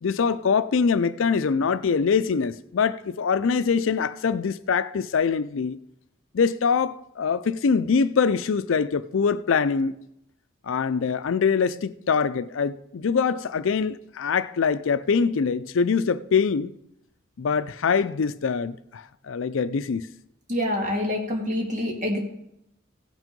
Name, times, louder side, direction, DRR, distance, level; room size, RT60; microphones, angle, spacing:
voice 1, 0.0-5.8 6.3-10.0 10.6-16.7 17.4-20.1, left 5 dB, 80° left, 0.4 m, -24 dB
voice 2, 20.5-22.2, left 1 dB, 35° right, 2.2 m, -26 dB
16.5 x 6.2 x 5.2 m
head